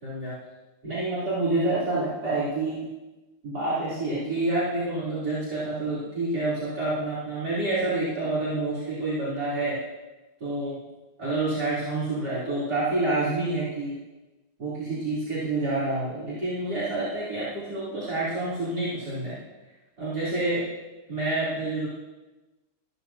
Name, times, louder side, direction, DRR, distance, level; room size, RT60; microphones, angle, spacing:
voice 1, 0.0-0.4 0.8-2.9 3.4-9.8 10.4-10.8 11.2-14.0 14.6-19.4 20.0-20.7 21.1-21.9, right 2 dB, 55° right, -11 dB, 4.1 m, -28 dB
14.5 x 14.0 x 2.8 m, 1.1 s
omnidirectional pair, 2.1 m